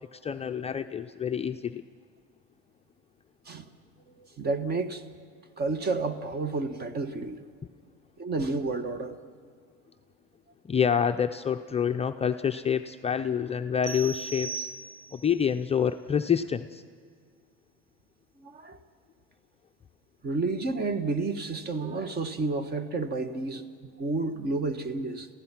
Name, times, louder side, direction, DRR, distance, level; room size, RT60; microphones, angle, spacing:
voice 1, 0.1-1.8 10.6-14.7 15.1-16.8, left 8 dB, 20° left, 0.5 m, -27 dB
voice 2, 4.2-5.0 5.6-7.4 8.2-9.2 18.4-18.8 20.2-25.3, right 3 dB, 35° right, 1.4 m, -31 dB
sound 1, 13.8-15.4, right 4 dB, 90° right, 1.0 m, -37 dB
28.0 x 15.5 x 5.9 m
supercardioid pair, 115°, 29 cm